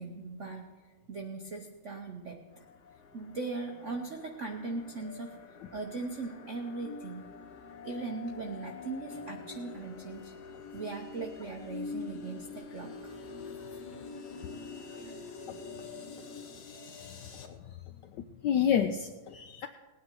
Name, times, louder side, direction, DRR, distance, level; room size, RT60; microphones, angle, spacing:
voice 1, 0.0-2.4 3.1-5.4 5.7-7.3 7.8-10.3 10.7-13.2, right 3 dB, 65° right, 2 dB, 0.7 m, -39 dB
sound 1, 2.5-17.5, left 4 dB, 55° left, 1.4 m, -45 dB
voice 2, 18.4-19.7, left 8 dB, 75° left, 8 dB, 1.0 m, -29 dB
19.5 x 9.3 x 4.5 m, 1.3 s
omnidirectional pair, 2.4 m